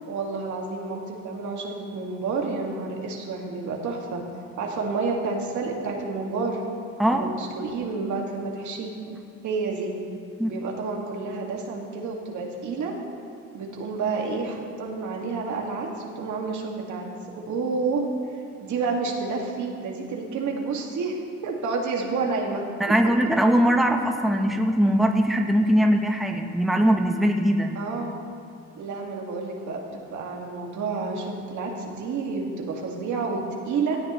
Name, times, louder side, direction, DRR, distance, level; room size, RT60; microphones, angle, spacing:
voice 1, 0.1-4.2 4.6-6.6 7.1-8.9 9.4-9.9 10.4-12.9 13.5-17.1 17.4-18.1 18.6-22.7 27.8-28.1 28.8-34.0, right 4 dB, 75° right, 0 dB, 2.0 m, -29 dB
voice 2, 22.8-27.7, equal, ahead, 3 dB, 1.0 m, -21 dB
18.0 x 13.0 x 3.1 m, 2.5 s
cardioid pair, 90°, 30 cm